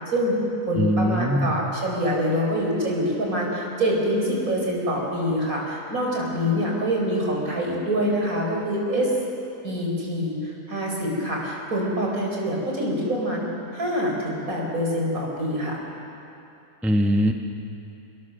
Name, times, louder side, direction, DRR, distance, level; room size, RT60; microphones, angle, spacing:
voice 1, 0.1-0.4 0.7-9.1 9.6-13.4 13.7-15.8, equal, 60° right, -2 dB, 5.1 m, -25 dB
voice 2, 0.7-1.5 16.8-17.3, equal, ahead, 3 dB, 0.9 m, -21 dB
26.0 x 21.5 x 6.6 m, 2.8 s
omnidirectional pair, 1.7 m